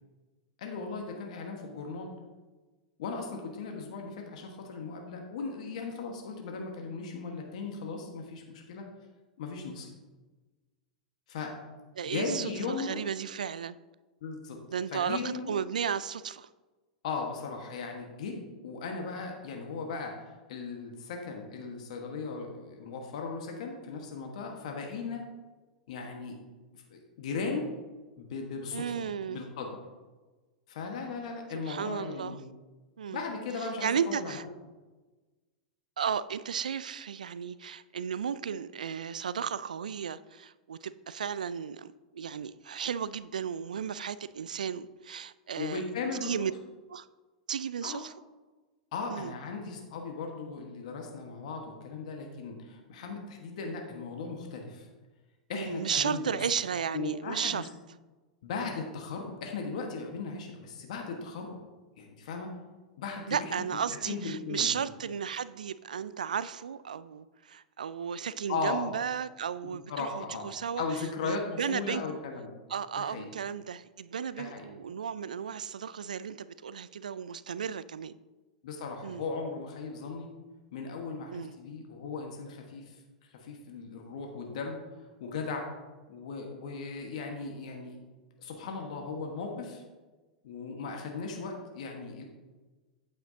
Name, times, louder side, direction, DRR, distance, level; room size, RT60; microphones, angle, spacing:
voice 1, 0.6-2.1 3.0-8.9 9.4-9.9 11.3-11.5 12.1-13.0 14.2-14.6 14.9-15.5 17.0-18.4 18.6-20.2 20.5-25.2 25.9-26.4 26.7-27.7 28.2-28.8 29.3-29.7 30.7-32.4 33.1-34.4 45.6-46.3 47.8-48.0 48.9-54.9 55.5-56.4 56.9-57.7 58.4-61.5 62.0-62.5 63.0-63.5 64.0-64.7 68.5-68.9 69.9-70.5 70.8-72.5 73.0-73.3 74.4-74.6 78.6-80.3 80.7-82.9 83.3-84.8 85.2-85.7 86.1-88.0 88.4-89.8 90.4-92.2, left 4 dB, 65° left, 1.3 m, -37 dB
voice 2, 12.0-13.8 14.7-16.5 28.7-29.4 31.7-32.4 33.0-33.2 33.8-34.5 36.0-45.8 46.2-46.5 46.9-47.1 47.5-48.1 49.1-49.3 55.5-57.6 63.3-70.8 71.2-72.0 72.7-78.2 79.0-79.2 81.3-81.5, right 7 dB, 80° right, 0.3 m, -34 dB
8.8 x 8.5 x 2.7 m
hypercardioid pair, 100°, 4 cm